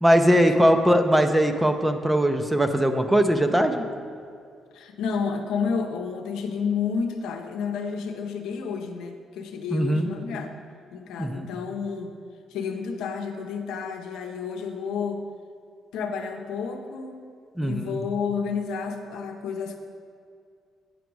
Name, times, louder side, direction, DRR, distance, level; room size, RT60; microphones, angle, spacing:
voice 1, 0.0-3.8 9.7-10.1 11.2-11.5 17.6-18.0, equal, 10° right, 7 dB, 0.6 m, -20 dB
voice 2, 4.7-10.5 10.9-12.1 12.5-15.2 15.9-17.2 17.6-19.8, left 5 dB, 90° left, 4 dB, 0.7 m, -30 dB
9.4 x 5.1 x 4.7 m, 2.3 s
cardioid pair, 90°, 0 cm